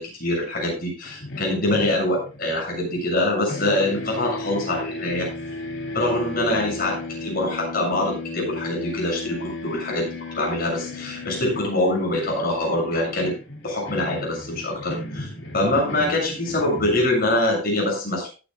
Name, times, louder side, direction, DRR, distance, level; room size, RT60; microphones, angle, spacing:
voice 1, 0.0-5.3 5.9-10.1 10.3-13.3 13.6-15.3 15.5-18.3, left 1 dB, 45° left, -1 dB, 6.9 m, -24 dB
sound 1, 1.0-3.2 3.5-17.5, left 2 dB, 65° left, 2.5 m, -35 dB
19.0 x 9.2 x 2.3 m, 0.32 s
head